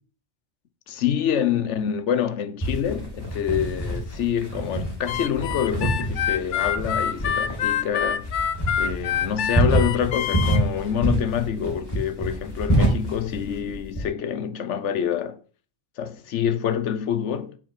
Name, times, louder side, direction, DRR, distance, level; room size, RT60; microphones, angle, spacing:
voice 1, 0.9-8.3 8.8-15.4 16.0-17.6, left 9 dB, 90° left, 1.1 m, -26 dB
sound 1, 2.6-14.0, right 1 dB, 20° left, 2.7 m, -27 dB
Harmonica, 5.1-10.6, left 9 dB, 60° left, 0.5 m, -26 dB
7.3 x 5.9 x 4.9 m
omnidirectional pair, 1.2 m